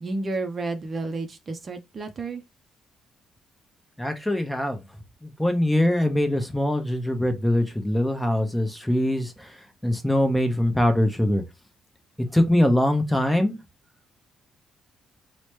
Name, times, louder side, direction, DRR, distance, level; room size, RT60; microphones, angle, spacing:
voice 1, 0.0-2.4, right 3 dB, 40° right, 0.5 m, -31 dB
voice 2, 4.0-4.8 5.2-11.4 12.3-13.6, left 1 dB, 5° left, 0.7 m, -23 dB
3.0 x 2.1 x 3.0 m
cardioid pair, 90°, 0 cm